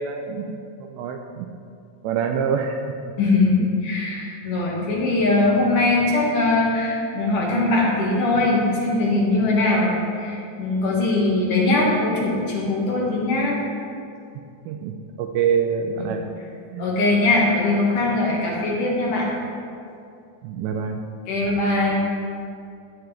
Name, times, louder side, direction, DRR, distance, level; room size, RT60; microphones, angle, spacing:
voice 1, 0.0-1.5 2.0-2.8 3.6-3.7 14.7-14.9 15.2-16.2 16.7-16.9 20.4-21.0, right 7 dB, 85° right, 4 dB, 2.6 m, -25 dB
voice 2, 3.2-13.6 16.0-16.1 16.8-19.3 21.3-22.0, left 2 dB, 55° left, -3 dB, 2.6 m, -21 dB
14.0 x 10.5 x 3.4 m, 2.4 s
omnidirectional pair, 5.4 m